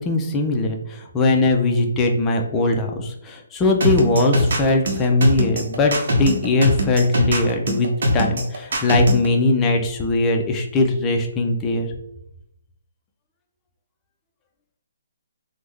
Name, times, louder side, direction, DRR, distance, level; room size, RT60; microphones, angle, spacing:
voice 1, 0.0-11.9, left 2 dB, 15° left, 2 dB, 0.4 m, -20 dB
sound 1, 3.8-9.3, equal, 60° right, 0.8 m, -20 dB
3.4 x 2.0 x 3.2 m, 0.79 s
hypercardioid pair, 165°, 0 cm